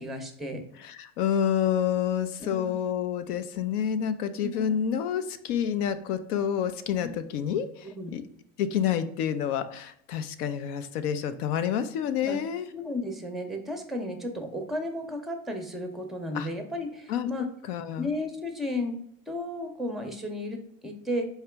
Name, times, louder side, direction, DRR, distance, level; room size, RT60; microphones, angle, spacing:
voice 1, 0.0-0.6 2.4-2.7 4.3-4.8 7.0-7.1 7.9-8.1 12.2-12.4 12.7-17.5 18.0-18.9 19.3-21.3, left 1 dB, ahead, 5 dB, 0.5 m, -34 dB
voice 2, 0.8-8.2 8.6-12.7 16.3-16.5 17.1-17.3 17.7-18.1, left 8 dB, 80° left, 11 dB, 0.6 m, -28 dB
4.6 x 2.8 x 3.4 m, 0.71 s
supercardioid pair, 95°, 45 cm